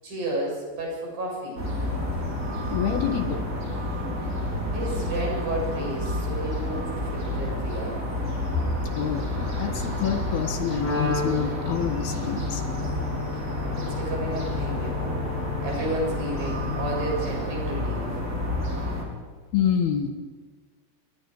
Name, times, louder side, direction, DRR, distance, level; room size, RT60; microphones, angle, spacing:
voice 1, 0.0-1.6 4.7-8.0 13.8-15.2 15.6-18.1, right 1 dB, 55° right, -2 dB, 9.0 m, -32 dB
sound 1, 1.6-19.0, left 1 dB, 20° right, 4.7 m, -30 dB
voice 2, 2.7-3.5 8.9-12.7 19.5-20.1, left 8 dB, 70° left, 6 dB, 3.1 m, -27 dB
Wind instrument woodwind instrument, 10.8-17.2, left 4 dB, 90° left, 6.8 m, -34 dB
28.5 x 21.5 x 4.8 m, 1.4 s
omnidirectional pair, 4.9 m